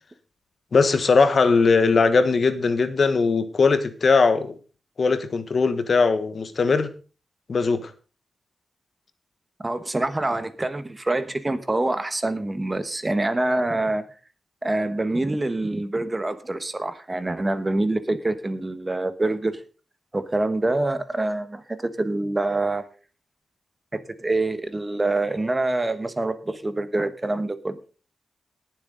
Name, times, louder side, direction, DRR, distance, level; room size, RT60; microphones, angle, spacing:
voice 1, 0.7-4.5 5.0-6.9 7.5-7.9, left 4 dB, 55° left, 1.3 m, -20 dB
voice 2, 9.6-14.0 14.6-19.6 20.1-22.8 23.9-27.8, right 2 dB, 20° right, 1.2 m, -25 dB
19.5 x 7.5 x 3.9 m
wide cardioid pair, 115°, 0 cm